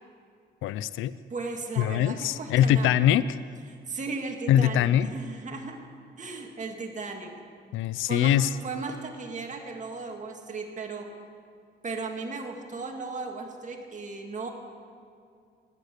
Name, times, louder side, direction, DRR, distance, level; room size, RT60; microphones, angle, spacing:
voice 1, 0.6-1.1 1.8-3.4 4.5-5.1 7.7-8.5, left 11 dB, 85° left, 16 dB, 0.5 m, -23 dB
voice 2, 1.3-3.1 3.7-5.8 6.2-7.3 8.0-11.1 11.8-14.5, right 3 dB, 40° right, 2 dB, 2.0 m, -36 dB
20.0 x 8.1 x 6.7 m, 2.4 s
cardioid pair, 90°, 20 cm